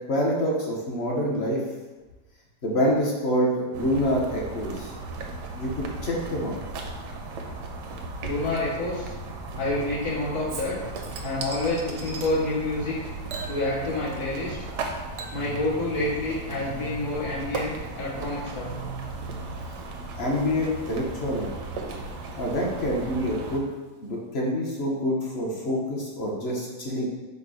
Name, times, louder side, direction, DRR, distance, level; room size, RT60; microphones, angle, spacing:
voice 1, 0.1-1.6 2.6-4.9 5.6-6.5 20.2-21.5 22.3-23.7 24.0-27.1, equal, 50° left, -3 dB, 0.8 m, -26 dB
sound 1, 3.7-23.6, right 3 dB, 90° right, 1.2 m, -36 dB
voice 2, 8.2-9.1 9.6-10.8 11.2-13.0 13.5-14.5 15.3-18.7, left 2 dB, 75° left, -10 dB, 2.1 m, -28 dB
Chink clink / Liquid, 10.5-12.3 13.3-14.4 14.7-23.7 24.1-24.2, right 4 dB, 70° right, 0.7 m, -43 dB
4.9 x 2.2 x 4.7 m, 1.2 s
omnidirectional pair, 1.8 m